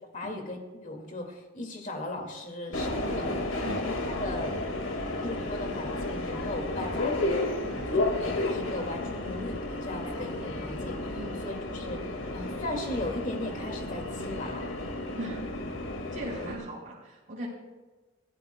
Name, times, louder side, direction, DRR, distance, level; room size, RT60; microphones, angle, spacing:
voice 1, 0.1-0.6 0.8-3.4 3.8-4.6 5.2-7.1 7.9-14.6, left 2 dB, 40° left, 2 dB, 2.3 m, -37 dB
Subway metro underground, 2.7-16.5, left 2 dB, 85° left, 2.0 m, -32 dB
voice 2, 16.1-17.5, right 1 dB, 40° right, -5 dB, 4.0 m, -39 dB
29.5 x 14.0 x 2.3 m, 1.2 s
head